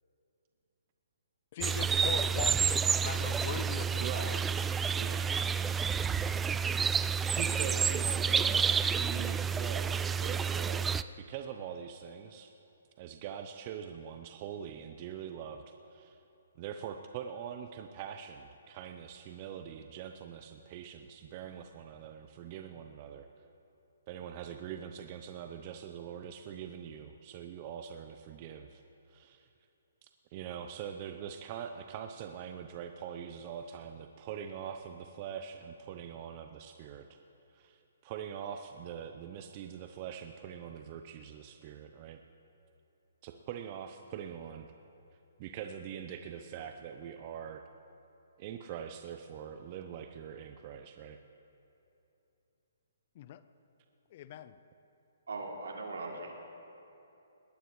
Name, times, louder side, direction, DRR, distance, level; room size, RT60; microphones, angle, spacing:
voice 1, 1.5-4.4 53.1-53.4 54.1-54.6, left 10 dB, 45° left, 13 dB, 0.7 m, -41 dB
sound 1, 1.6-11.0, right 6 dB, 10° right, 0.3 m, -29 dB
voice 2, 4.0-4.4 5.0-5.3 7.4-10.9 11.2-12.5 13.0-16.2 16.6-23.3 24.1-28.8 29.1-29.5 30.0-37.2 37.5-42.2 43.2-44.7 45.4-47.6 48.4-51.2, right 8 dB, 35° right, 6 dB, 0.7 m, -43 dB
voice 3, 55.3-56.3, right 3 dB, 80° right, 0 dB, 2.9 m, -39 dB
20.5 x 19.0 x 3.2 m, 2.9 s
hypercardioid pair, 140°, 0 cm